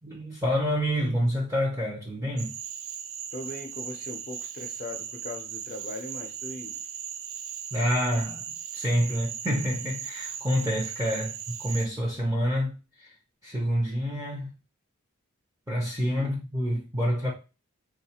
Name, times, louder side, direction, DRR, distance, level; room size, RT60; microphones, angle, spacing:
voice 1, 0.0-2.5 7.7-13.1 13.4-14.5 15.7-17.3, equal, 15° right, 0.6 m, -28 dB
Cricket / Frog, 2.4-11.9, right 8 dB, 65° right, 0.3 m, -38 dB
voice 2, 3.3-6.8 16.0-16.3, left 2 dB, 40° left, 0.5 m, -39 dB
3.4 x 2.4 x 2.8 m
head